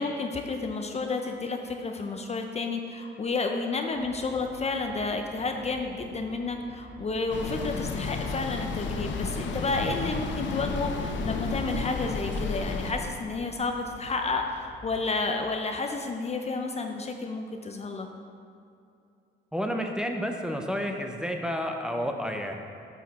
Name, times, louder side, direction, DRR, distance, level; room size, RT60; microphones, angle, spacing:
voice 1, 0.0-18.1, left 3 dB, 35° left, 4 dB, 0.6 m, -31 dB
sound 1, 3.9-15.1, left 1 dB, 15° left, 1.9 m, -49 dB
sound 2, 7.3-12.9, left 4 dB, 70° left, 0.7 m, -32 dB
voice 2, 19.5-22.5, equal, 5° right, 2 dB, 0.7 m, -30 dB
8.4 x 6.4 x 4.2 m, 2.6 s
cardioid pair, 90°, 20 cm